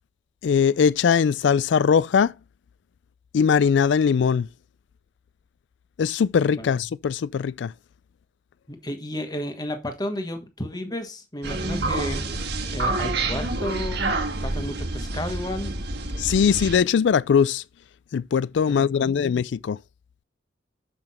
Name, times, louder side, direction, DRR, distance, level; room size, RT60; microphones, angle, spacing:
voice 1, 0.4-2.3 3.3-4.5 6.0-7.7 16.2-17.6 18.1-19.8, left 6 dB, 70° left, 0.3 m, -21 dB
voice 2, 8.7-12.2 12.7-14.0 14.4-15.7 18.7-19.2, left 1 dB, 20° left, 1.3 m, -32 dB
sound 1, 11.4-16.8, right 2 dB, 65° right, 1.6 m, -28 dB
6.9 x 5.9 x 4.2 m
head